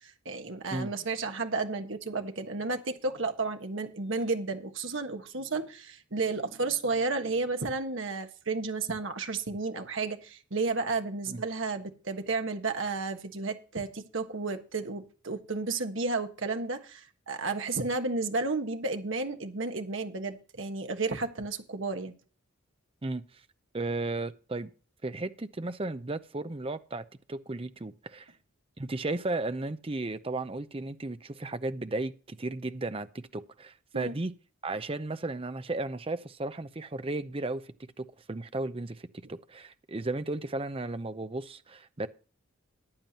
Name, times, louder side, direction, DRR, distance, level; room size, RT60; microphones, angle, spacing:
voice 1, 0.0-22.1 33.9-34.1, right 3 dB, 60° right, 1.4 m, -32 dB
voice 2, 23.0-23.4 23.7-24.7 25.0-28.3 28.8-34.3 34.6-37.6 38.0-42.1, right 2 dB, 25° right, 0.6 m, -34 dB
14.5 x 10.5 x 2.9 m
head